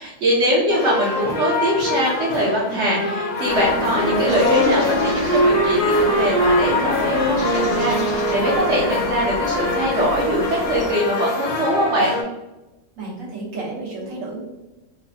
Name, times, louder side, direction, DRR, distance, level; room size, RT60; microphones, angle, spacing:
voice 1, 0.0-12.2, equal, 65° right, -4 dB, 0.9 m, -22 dB
sound 1, 0.7-12.2, left 3 dB, 55° left, 0.4 m, -26 dB
sound 2, 3.4-10.9, left 1 dB, 75° left, 1.1 m, -29 dB
Wind instrument woodwind instrument, 3.9-8.9, right 1 dB, 15° right, 0.7 m, -22 dB
voice 2, 13.0-14.4, right 2 dB, 85° right, -5 dB, 1.5 m, -31 dB
3.8 x 2.1 x 2.7 m, 1.0 s
omnidirectional pair, 1.3 m